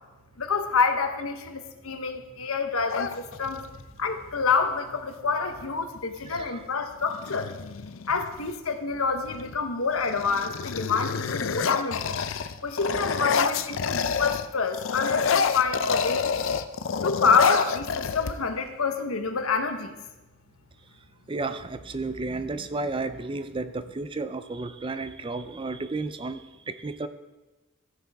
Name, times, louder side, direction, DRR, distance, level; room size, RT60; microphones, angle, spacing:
voice 1, 0.4-3.6 4.0-7.5 8.1-12.1 12.6-16.3 17.0-20.0, left 5 dB, 90° left, 7 dB, 1.1 m, -27 dB
sound 1, 2.9-3.8 5.5-5.7 6.0-6.5 7.0-8.5 9.2-9.6 9.9-14.5 14.7-18.7, left 6 dB, 70° left, 0.5 m, -28 dB
voice 2, 6.3-6.6 21.3-27.1, right 3 dB, 25° right, 11 dB, 0.4 m, -32 dB
14.5 x 9.0 x 3.5 m, 1.1 s
head